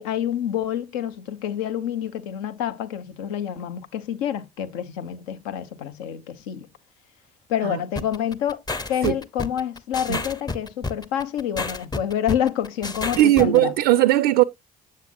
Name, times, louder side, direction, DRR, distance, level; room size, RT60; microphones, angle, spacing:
voice 1, 0.0-6.7 7.5-8.6 8.9-13.7, left 9 dB, 70° left, 0.7 m, -28 dB
sound 1, 8.0-13.6, left 3 dB, 20° left, 0.8 m, -30 dB
voice 2, 13.2-14.4, right 15 dB, 65° right, 0.4 m, -18 dB
7.5 x 7.3 x 2.5 m
figure-of-eight pair, 45°, 19 cm